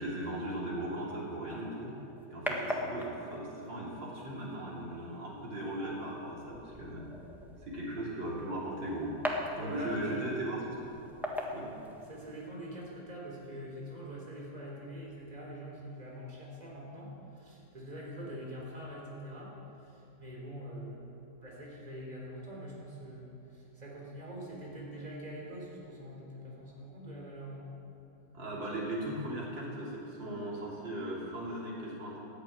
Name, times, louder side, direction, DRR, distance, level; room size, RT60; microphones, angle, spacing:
voice 1, 0.0-2.0 2.3-7.1 7.6-9.1 9.6-10.9 11.5-11.7 18.2-18.3 28.3-32.2, right 1 dB, 80° right, -5 dB, 3.8 m, -38 dB
sound 1, 1.5-12.5, equal, ahead, 1.4 m, -42 dB
voice 2, 9.5-10.3 12.0-27.7, equal, 20° right, -3 dB, 3.6 m, -44 dB
14.5 x 10.5 x 9.3 m, 2.8 s
omnidirectional pair, 2.0 m